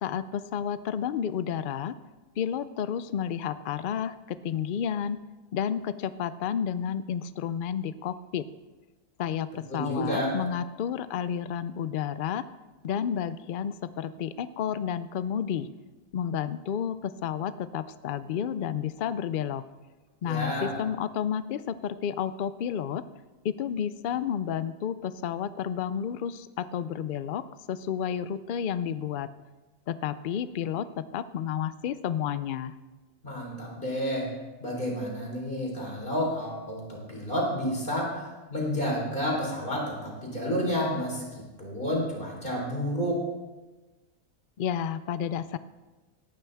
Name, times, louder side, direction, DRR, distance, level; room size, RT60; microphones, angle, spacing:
voice 1, 0.0-2.0 2.4-5.2 5.5-8.4 9.2-12.4 12.8-15.7 16.1-19.6 20.2-23.0 23.4-29.3 29.9-32.7 44.6-45.6, left 8 dB, 80° left, 14 dB, 0.4 m, -31 dB
voice 2, 9.7-10.3 20.2-20.8 33.2-34.3 34.6-43.2, equal, 35° left, -2 dB, 3.9 m, -30 dB
17.5 x 12.0 x 3.5 m, 1.2 s
omnidirectional pair, 1.4 m